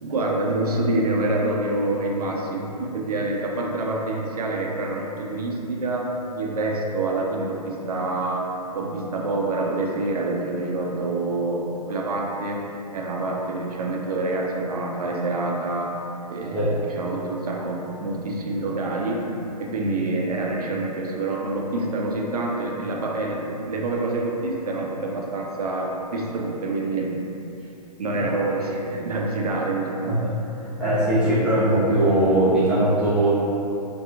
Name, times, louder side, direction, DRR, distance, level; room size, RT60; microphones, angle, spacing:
voice 1, 0.0-8.5 8.7-12.6 12.9-15.9 16.3-16.7 17.0-19.3 19.6-27.2 28.0-30.2, right 2 dB, 65° right, -1 dB, 0.5 m, -26 dB
voice 2, 30.8-33.3, right 1 dB, 5° right, -14 dB, 0.3 m, -20 dB
2.8 x 2.3 x 2.4 m, 2.8 s
figure-of-eight pair, 115°, 21 cm